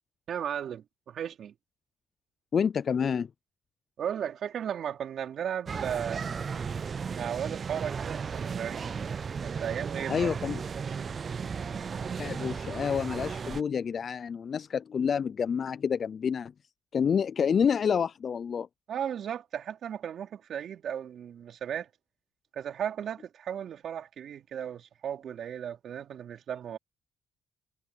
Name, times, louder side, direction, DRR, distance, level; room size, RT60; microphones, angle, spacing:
voice 1, 0.3-1.5 4.0-6.2 7.1-8.9 9.4-10.3 18.9-21.9 22.5-26.8, right 9 dB, 65° right, 4.2 m, -35 dB
voice 2, 2.5-3.3 10.1-10.6 12.2-16.5 16.9-18.7, left 7 dB, 50° left, 0.4 m, -28 dB
sound 1, 5.7-13.6, right 6 dB, 45° right, 0.5 m, -35 dB
cardioid pair, 90°, 0 cm